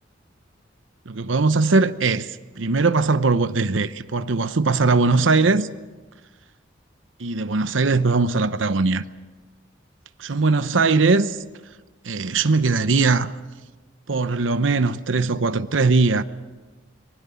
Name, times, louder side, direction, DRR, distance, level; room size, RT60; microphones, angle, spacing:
voice 1, 1.1-5.7 7.2-9.0 10.2-11.4 12.0-13.3 14.1-16.2, right 3 dB, 90° right, 0.9 m, -20 dB
25.5 x 20.5 x 7.0 m
head